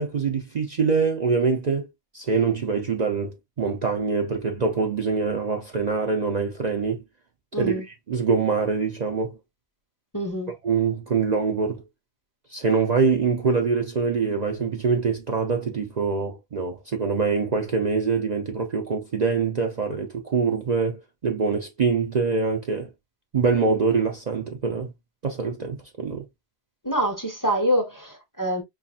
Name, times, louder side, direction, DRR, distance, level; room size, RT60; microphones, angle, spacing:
voice 1, 0.0-1.9 2.1-7.0 7.6-7.7 8.1-9.4 10.6-11.8 12.5-22.9 23.3-24.9 25.2-26.2, right 5 dB, 45° right, 0.6 m, -24 dB
voice 2, 7.5-7.8 10.1-10.5 26.8-28.6, equal, 20° left, 0.8 m, -25 dB
5.6 x 2.4 x 2.3 m
omnidirectional pair, 1.1 m